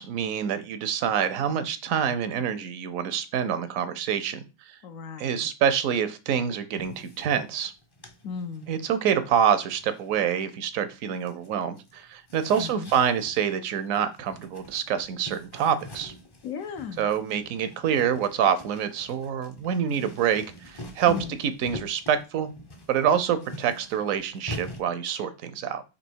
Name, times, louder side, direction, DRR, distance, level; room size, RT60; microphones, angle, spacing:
voice 1, 0.0-4.4 5.2-7.7 8.7-16.1 17.0-22.5 22.9-25.8, right 8 dB, 75° right, 12 dB, 1.0 m, -26 dB
voice 2, 4.8-5.5 8.2-8.8 12.6-12.9 16.4-17.1 21.1-21.4, left 6 dB, 75° left, 8 dB, 1.0 m, -36 dB
sound 1, 6.8-10.9 11.2-24.8, left 1 dB, 30° left, 0.4 m, -45 dB
4.1 x 2.9 x 4.5 m, 0.30 s
omnidirectional pair, 1.5 m